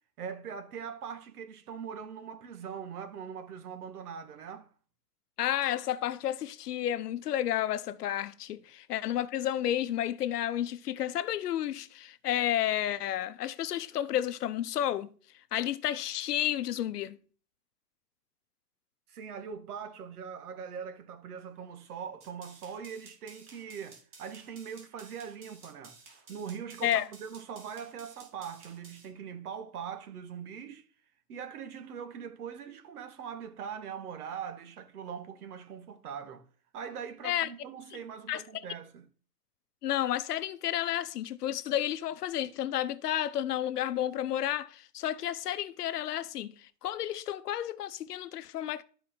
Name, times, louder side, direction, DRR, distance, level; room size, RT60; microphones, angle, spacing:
voice 1, 0.2-4.7 19.1-30.9 31.3-36.5 36.7-39.1, right 7 dB, 70° right, 1.7 m, -42 dB
voice 2, 5.4-15.1 15.5-17.2 26.8-27.0 37.2-37.5 38.3-38.4 39.8-48.8, left 11 dB, 85° left, 0.8 m, -31 dB
sound 1, 22.2-29.1, right 4 dB, 25° right, 2.7 m, -54 dB
12.5 x 4.8 x 4.4 m
hypercardioid pair, 155°, 46 cm